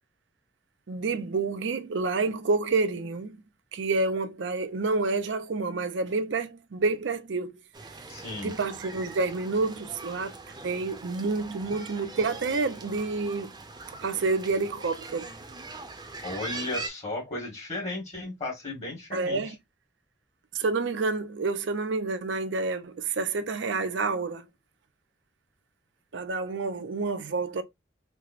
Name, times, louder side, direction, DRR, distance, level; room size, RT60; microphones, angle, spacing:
voice 1, 0.9-3.4 3.7-7.5 8.4-13.5 14.0-15.3 19.1-19.6 20.5-24.5 26.1-27.6, right 3 dB, 75° right, 0.5 m, -28 dB
sound 1, 7.7-16.9, right 3 dB, 25° right, 0.6 m, -42 dB
voice 2, 8.1-8.5 16.2-19.5, left 2 dB, 35° left, 1.2 m, -35 dB
4.5 x 2.1 x 2.4 m
head